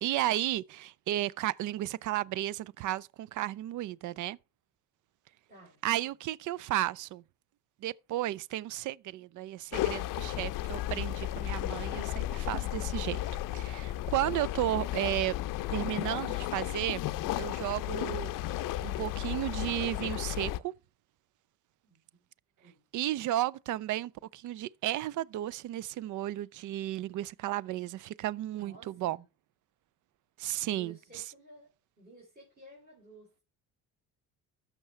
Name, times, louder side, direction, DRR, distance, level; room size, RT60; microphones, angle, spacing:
voice 1, 0.0-4.4 5.8-7.2 7.8-13.2 13.5-15.3 15.7-17.1 17.4-18.5 18.8-20.7 22.9-29.2 30.4-31.2, right 14 dB, 65° right, 0.5 m, -33 dB
voice 2, 5.5-5.8 21.8-22.0 22.6-22.8 28.5-29.3 30.6-31.7 32.0-33.4, right 2 dB, 25° right, 3.8 m, -54 dB
sound 1, 9.7-20.6, left 14 dB, 70° left, 0.5 m, -34 dB
14.0 x 6.0 x 3.2 m
cardioid pair, 110°, 34 cm